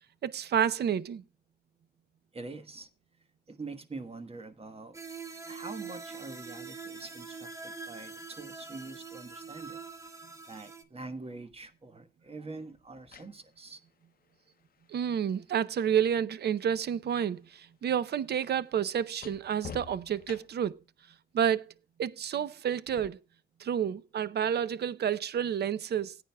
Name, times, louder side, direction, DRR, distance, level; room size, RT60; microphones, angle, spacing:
voice 1, 0.2-1.2 14.9-20.8 21.3-21.6 22.0-23.2 23.6-26.2, right 8 dB, 70° right, 0.6 m, -29 dB
voice 2, 2.3-2.9 3.5-5.0 5.4-9.8 10.5-13.8, right 3 dB, 35° right, 1.3 m, -44 dB
sound 1, 4.9-10.8, right 4 dB, 15° right, 1.1 m, -44 dB
sound 2, 11.5-11.7 12.7-16.8 17.1-20.8 22.9-23.1, left 7 dB, 60° left, 0.6 m, -51 dB
19.0 x 9.0 x 2.2 m
wide cardioid pair, 100°, 17 cm